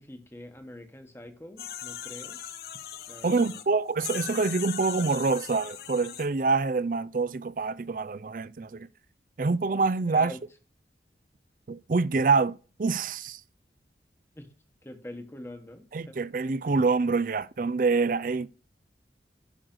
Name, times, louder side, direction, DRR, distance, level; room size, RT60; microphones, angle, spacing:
voice 1, 0.0-2.4 3.1-3.6 10.1-10.4 14.3-14.5 14.8-16.2, left 1 dB, 15° left, 1.1 m, -44 dB
sound 1, 1.6-3.7 4.0-6.3, left 10 dB, 60° left, 0.6 m, -39 dB
voice 2, 3.2-8.9 9.4-10.3 11.7-13.4 15.9-18.5, right 4 dB, 50° right, 0.4 m, -26 dB
8.9 x 6.4 x 3.8 m
head